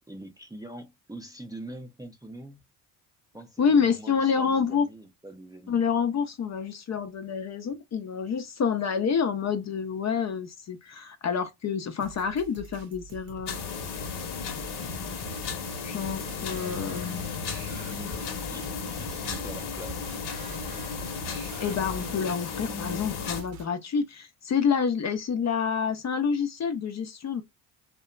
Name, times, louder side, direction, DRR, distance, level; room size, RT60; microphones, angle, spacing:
voice 1, 0.1-2.6 3.3-5.8 17.9-20.0, right 1 dB, 10° right, 0.6 m, -44 dB
voice 2, 3.6-4.9 5.7-13.6 15.8-17.3 21.6-27.4, left 6 dB, 35° left, 0.6 m, -28 dB
sound 1, 12.0-23.7, right 4 dB, 45° right, 0.7 m, -46 dB
sound 2, 13.5-23.4, left 6 dB, 55° left, 1.0 m, -34 dB
sound 3, 14.8-22.4, right 7 dB, 85° right, 0.8 m, -46 dB
2.8 x 2.2 x 2.3 m
hypercardioid pair, 65°, 48 cm